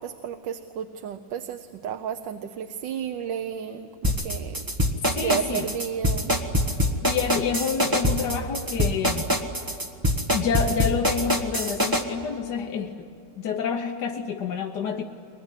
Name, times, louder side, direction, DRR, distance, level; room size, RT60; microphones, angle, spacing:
voice 1, 0.0-4.6 5.2-6.3, right 8 dB, 85° right, 8 dB, 1.5 m, -32 dB
sound 1, 4.0-12.0, equal, 10° right, 1.4 m, -24 dB
voice 2, 5.2-5.7 7.0-9.3 10.3-13.1 13.4-15.0, left 6 dB, 70° left, 3 dB, 1.6 m, -28 dB
23.0 x 21.0 x 9.8 m, 2.7 s
omnidirectional pair, 1.9 m